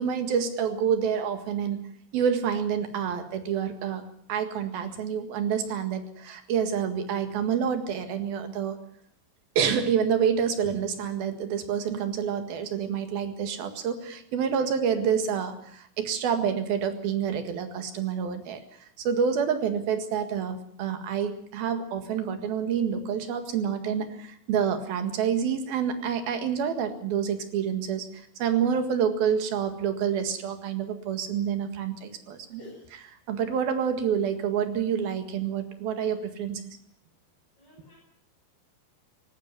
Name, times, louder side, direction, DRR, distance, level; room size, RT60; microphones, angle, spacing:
voice 1, 0.0-8.8 9.6-32.6 33.3-36.8, right 7 dB, 75° right, 8 dB, 3.7 m, -28 dB
voice 2, 32.6-32.9 37.6-38.0, left 1 dB, 25° left, -6 dB, 7.9 m, -48 dB
19.0 x 17.5 x 9.4 m, 0.65 s
omnidirectional pair, 4.4 m